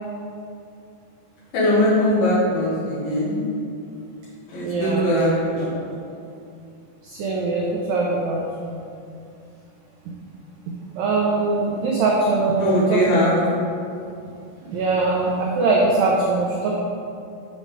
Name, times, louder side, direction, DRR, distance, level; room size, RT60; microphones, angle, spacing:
voice 1, 1.5-3.4 4.5-5.7 12.6-13.3, equal, 65° left, -7 dB, 3.3 m, -20 dB
voice 2, 4.6-5.1 7.2-8.8 11.0-13.0 14.7-16.8, right 3 dB, 85° right, -3 dB, 1.9 m, -22 dB
8.8 x 6.5 x 3.3 m, 2.5 s
omnidirectional pair, 5.0 m